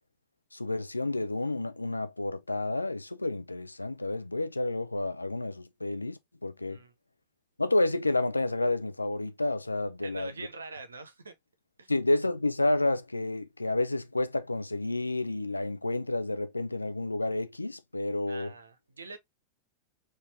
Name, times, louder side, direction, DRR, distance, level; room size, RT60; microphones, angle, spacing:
voice 1, 0.5-6.8 7.6-10.3 11.9-18.5, left 2 dB, 85° left, 0.4 m, -30 dB
voice 2, 10.0-11.3 11.8-11.9 18.3-19.2, right 3 dB, 75° right, 0.7 m, -44 dB
4.2 x 2.6 x 2.6 m
figure-of-eight pair, 90°, 0 cm